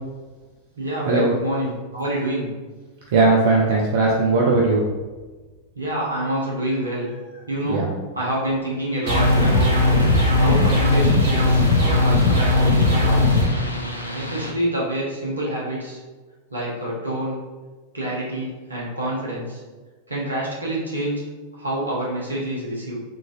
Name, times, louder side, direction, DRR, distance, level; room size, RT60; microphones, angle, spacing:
voice 1, 0.8-2.5 5.7-7.1 7.5-9.7 10.4-13.4 14.1-16.0 16.5-17.4 17.9-19.6 20.1-21.2 21.5-23.0, right 1 dB, 80° right, -5 dB, 0.9 m, -27 dB
voice 2, 3.1-4.8 7.6-7.9, right 3 dB, 55° right, -3 dB, 0.4 m, -18 dB
sound 1, 9.0-14.5, equal, 85° left, 0.4 m, -31 dB
sound 2, 9.1-13.5, left 2 dB, 40° right, 1.0 m, -17 dB
3.7 x 2.4 x 2.4 m, 1.3 s
figure-of-eight pair, 90°, 0 cm